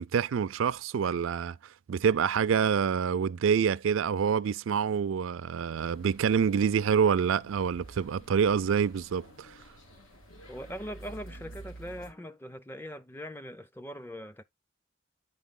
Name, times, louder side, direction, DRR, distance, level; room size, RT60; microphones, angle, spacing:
voice 1, 0.0-1.6 1.9-9.5, right 7 dB, 80° right, 0.4 m, -26 dB
sound 1, 5.7-12.1, right 1 dB, 90° left, 1.6 m, -50 dB
voice 2, 10.5-14.4, equal, 10° left, 0.5 m, -41 dB
8.7 x 5.3 x 3.7 m
head